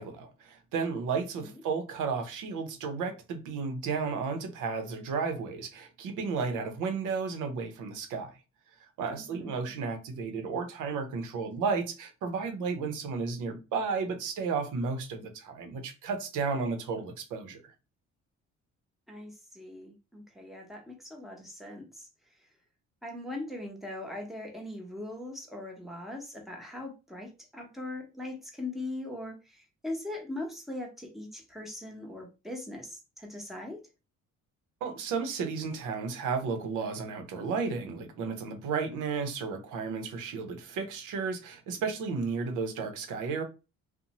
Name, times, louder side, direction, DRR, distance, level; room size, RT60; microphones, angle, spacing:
voice 1, 0.0-8.4 9.0-17.7 34.8-43.4, right 5 dB, 90° right, 0.7 m, -33 dB
voice 2, 9.1-9.7 19.1-22.1 22.4-22.5 23.0-33.9, left 2 dB, ahead, 0.8 m, -40 dB
2.6 x 2.1 x 2.8 m
cardioid pair, 90°, 30 cm